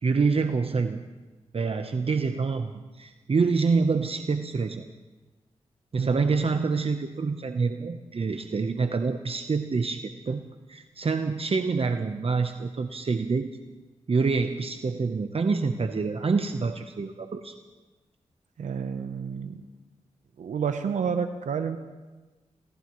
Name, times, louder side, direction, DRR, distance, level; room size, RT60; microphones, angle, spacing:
voice 1, 0.0-1.0 1.5-4.9 5.9-10.4 10.7-13.5 14.1-17.5, right 4 dB, 50° right, 7 dB, 0.9 m, -26 dB
voice 2, 18.6-19.6 20.4-21.8, right 6 dB, 85° right, 7 dB, 0.9 m, -29 dB
26.5 x 17.5 x 3.2 m, 1.2 s
cardioid pair, 50°, 12 cm